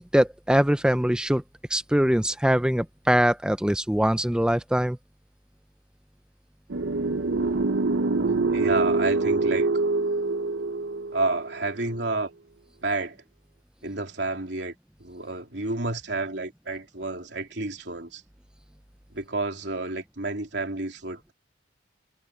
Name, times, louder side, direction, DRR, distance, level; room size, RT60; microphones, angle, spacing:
voice 1, 0.0-1.4 1.7-5.0, equal, 5° right, 0.5 m, -22 dB
sound 1, 6.7-11.8, right 3 dB, 90° right, 0.8 m, -25 dB
voice 2, 8.5-9.7 11.1-12.3 12.8-13.2 13.8-14.7 15.0-18.2 19.1-21.3, right 2 dB, 70° right, 3.2 m, -30 dB
head